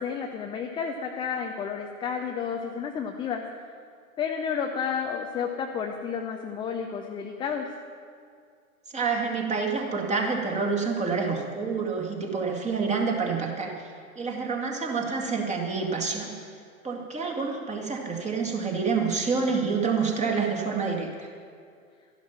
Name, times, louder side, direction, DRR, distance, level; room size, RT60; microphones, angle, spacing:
voice 1, 0.0-3.4 4.2-7.7, left 6 dB, 10° left, 3 dB, 0.5 m, -31 dB
voice 2, 8.9-16.3 16.8-21.3, right 4 dB, 15° right, 0 dB, 2.1 m, -28 dB
13.0 x 11.5 x 5.8 m, 2.3 s
figure-of-eight pair, 105°, 42 cm